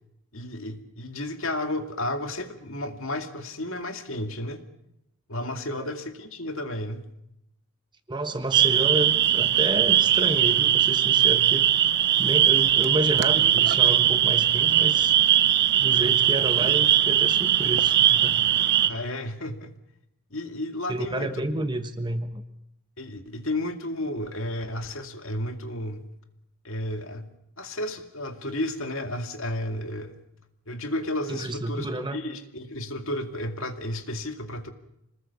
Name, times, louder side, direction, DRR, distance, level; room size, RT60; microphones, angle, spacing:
voice 1, 0.3-4.6 5.3-7.1 18.9-19.7 20.3-21.3 23.0-26.1 26.6-27.3 27.6-30.2 30.7-34.7, left 1 dB, 65° left, 6 dB, 2.2 m, -32 dB
voice 2, 8.1-11.7 12.2-15.1 15.8-18.4 20.9-22.4 31.3-32.2, right 1 dB, 20° right, 8 dB, 1.3 m, -30 dB
sound 1, 8.5-18.9, right 11 dB, 50° right, 0.9 m, -20 dB
26.5 x 19.5 x 7.1 m, 0.82 s
head